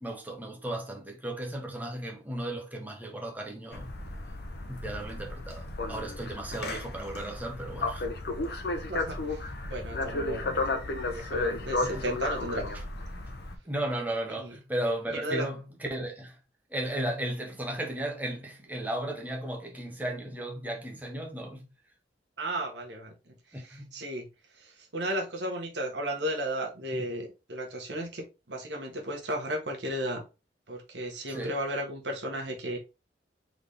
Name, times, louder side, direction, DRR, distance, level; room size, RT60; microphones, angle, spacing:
voice 1, 0.0-3.9 4.6-8.1 11.8-12.1 13.6-16.4 16.7-21.7 23.5-23.9 26.9-27.1 31.3-31.5, right 1 dB, 10° right, 0.9 m, -35 dB
sound 1, 3.7-13.6, left 2 dB, 65° left, 0.7 m, -33 dB
voice 2, 8.9-10.8 11.1-12.7 14.4-14.5 15.1-15.4 22.4-23.1 23.5-24.3 24.6-30.2 30.7-32.8, right 1 dB, 75° right, 1.3 m, -34 dB
4.0 x 3.5 x 3.4 m
head